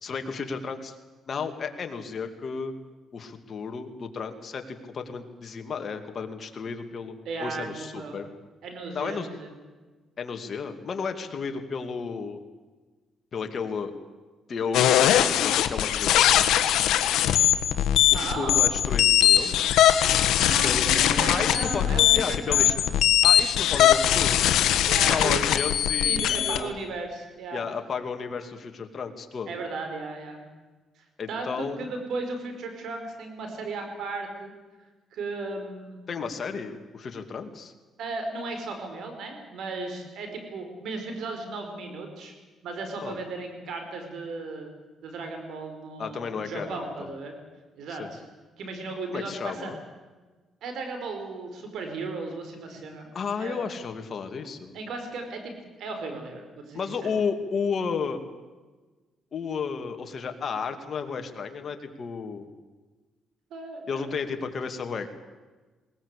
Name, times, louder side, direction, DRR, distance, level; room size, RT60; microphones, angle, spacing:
voice 1, 0.0-1.0 1.3-2.7 3.1-7.1 7.4-8.2 8.9-9.3 10.2-12.4 13.3-13.9 14.5-16.5 18.1-19.6 20.6-21.8 22.1-22.7 23.2-24.5 24.9-26.7 27.5-29.6 31.2-31.9 36.1-37.7 43.0-43.1 46.0-47.1 48.0-48.1 49.1-49.8 53.1-54.7 56.7-58.2 59.3-62.5 63.9-65.1, left 5 dB, 50° left, 5 dB, 2.5 m, -33 dB
voice 2, 7.2-8.2 8.6-9.5 18.1-18.8 20.4-22.7 24.8-25.4 26.0-27.6 29.5-30.4 31.0-34.5 35.1-36.0 38.0-42.3 42.6-44.7 45.0-47.3 47.8-48.2 48.6-49.7 50.6-53.1 53.4-53.6 54.7-57.1 63.5-64.0, right 3 dB, 75° right, 5 dB, 5.2 m, -35 dB
sound 1, 14.7-26.6, left 11 dB, 85° left, 1.3 m, -21 dB
20.5 x 19.0 x 8.4 m, 1.3 s
cardioid pair, 90°, 0 cm